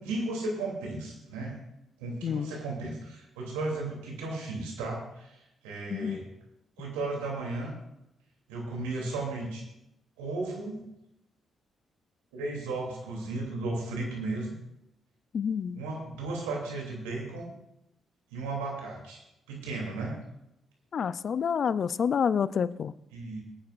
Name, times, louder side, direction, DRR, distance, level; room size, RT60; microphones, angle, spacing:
voice 1, 0.0-1.6 2.0-6.3 6.8-7.7 8.5-9.6 10.2-10.8 12.3-14.5 15.7-17.5 18.3-19.2 19.5-20.2 23.1-23.4, right 2 dB, 90° right, -1 dB, 2.9 m, -35 dB
voice 2, 15.3-15.8 20.9-22.9, left 7 dB, 60° left, 17 dB, 0.4 m, -28 dB
22.0 x 9.5 x 2.5 m, 0.86 s
hypercardioid pair, 45°, 0 cm